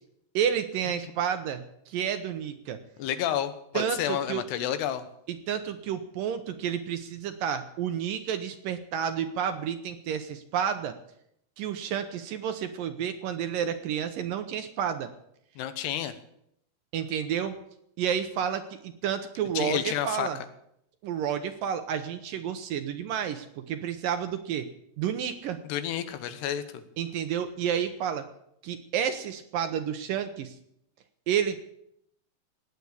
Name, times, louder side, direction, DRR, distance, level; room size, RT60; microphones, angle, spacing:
voice 1, 0.3-2.8 3.7-4.4 5.5-10.9 11.6-15.1 16.9-17.6 18.0-20.4 21.0-24.7 25.0-25.6 27.0-28.3 28.6-30.5 31.3-31.7, right 8 dB, 70° right, 9 dB, 2.3 m, -30 dB
voice 2, 3.0-5.1 15.6-16.1 19.5-20.3 25.6-26.6, left 11 dB, 85° left, 11 dB, 3.2 m, -30 dB
19.0 x 8.6 x 8.2 m, 0.75 s
omnidirectional pair, 4.7 m